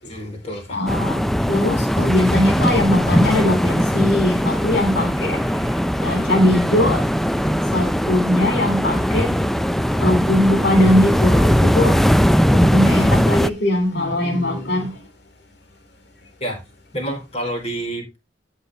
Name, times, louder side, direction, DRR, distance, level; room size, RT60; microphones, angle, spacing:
voice 1, 0.0-0.8 16.4-16.6 16.9-18.2, right 1 dB, 35° left, 5.0 m, -28 dB
voice 2, 0.7-1.2 1.5-5.7 6.0-7.1 7.7-9.4 10.0-12.0 12.5-15.0, left 1 dB, 65° left, 2.9 m, -20 dB
sound 1, 0.9-13.5, equal, ahead, 0.4 m, -19 dB
14.5 x 5.6 x 3.3 m
head